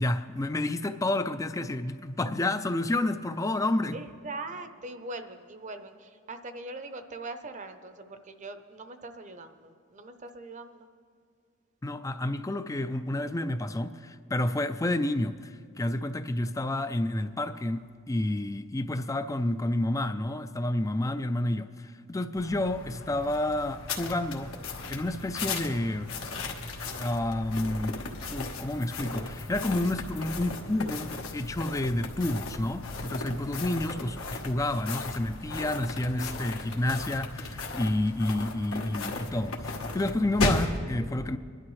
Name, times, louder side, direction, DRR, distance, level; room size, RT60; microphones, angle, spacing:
voice 1, 0.0-4.0 11.8-24.5 24.9-26.1 27.0-41.4, left 1 dB, 15° left, 0.4 m, -30 dB
voice 2, 3.9-10.9, right 2 dB, 35° right, 0.7 m, -41 dB
sound 1, 22.4-40.8, left 3 dB, 80° left, 1.2 m, -36 dB
25.5 x 11.5 x 3.2 m
head